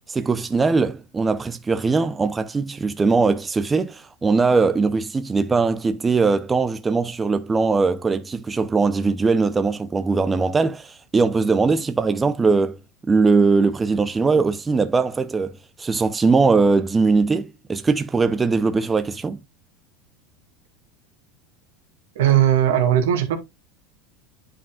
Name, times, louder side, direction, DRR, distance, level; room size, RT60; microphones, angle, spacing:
voice 1, 0.1-12.8 13.1-15.5 15.8-19.4, right 4 dB, 15° right, 0.6 m, -20 dB
voice 2, 22.2-23.4, right 11 dB, 85° right, 1.9 m, -18 dB
9.8 x 5.3 x 2.4 m
supercardioid pair, 115°, 0 cm